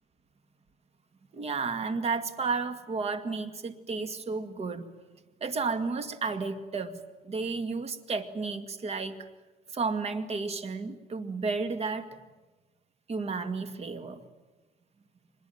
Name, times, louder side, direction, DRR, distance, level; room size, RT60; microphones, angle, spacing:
voice 1, 1.3-4.9 5.4-7.0 7.2-9.2 9.7-12.1 13.1-14.2, right 4 dB, 35° right, 10 dB, 2.1 m, -32 dB
24.0 x 21.0 x 9.4 m, 1.2 s
cardioid pair, 110°, 17 cm